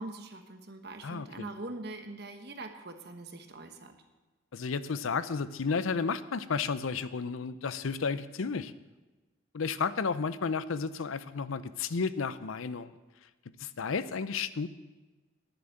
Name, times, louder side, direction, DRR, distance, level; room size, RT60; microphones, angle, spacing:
voice 1, 0.0-3.9, right 2 dB, 50° right, 6 dB, 1.1 m, -43 dB
voice 2, 1.0-1.5 4.5-8.7 9.5-12.9 13.6-14.7, left 5 dB, 85° left, 14 dB, 0.6 m, -32 dB
11.0 x 7.9 x 7.7 m, 1.2 s
head